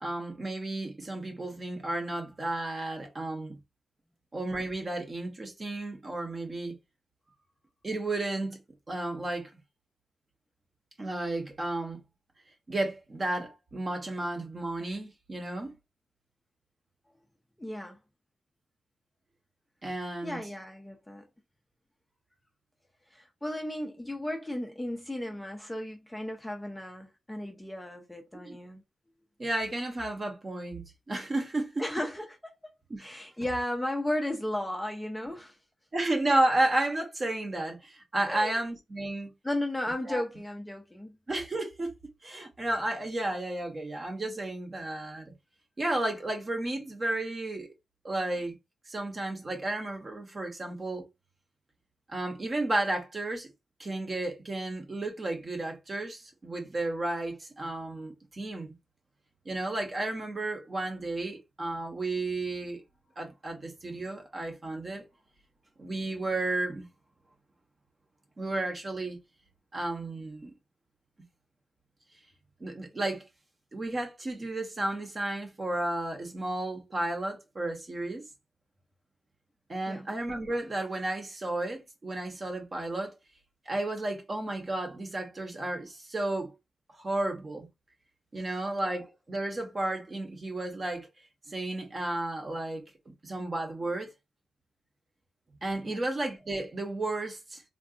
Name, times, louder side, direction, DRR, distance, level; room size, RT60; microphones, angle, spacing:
voice 1, 0.0-3.6 4.3-6.8 7.8-8.6 8.9-9.5 11.0-12.0 12.7-15.7 19.8-20.4 28.5-28.6 29.4-31.9 32.9-33.1 35.9-39.3 40.1-40.2 41.3-41.9 42.2-45.3 45.8-47.7 48.0-48.6 48.9-51.1 52.1-53.5 53.8-58.8 59.4-62.8 63.2-65.0 65.8-66.9 68.4-69.2 69.7-70.5 72.6-73.2 73.7-78.2 79.7-83.1 83.7-86.5 87.0-87.7 88.3-91.1 91.5-92.8 93.2-94.1 95.6-97.6, right 2 dB, 30° right, 0.7 m, -32 dB
voice 2, 17.6-18.0 20.2-21.3 23.1-28.8 31.8-32.7 33.0-35.6 38.3-38.6 39.4-41.2 79.9-80.1 95.8-96.0, left 1 dB, 5° left, 0.4 m, -35 dB
3.6 x 2.3 x 2.4 m
wide cardioid pair, 180°, 0 cm